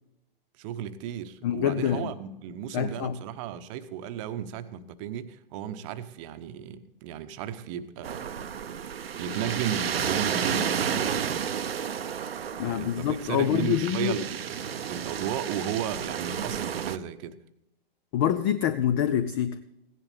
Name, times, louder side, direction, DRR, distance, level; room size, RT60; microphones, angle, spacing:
voice 1, 0.6-8.4 9.1-11.1 12.6-17.4, right 9 dB, 35° right, 11 dB, 0.9 m, -34 dB
voice 2, 1.4-2.1 2.7-3.1 12.6-14.2 18.1-19.6, left 10 dB, 25° left, 13 dB, 0.4 m, -26 dB
sound 1, 8.0-17.0, right 8 dB, 90° right, 0.7 m, -31 dB
16.0 x 10.5 x 3.5 m, 0.86 s
hypercardioid pair, 130°, 29 cm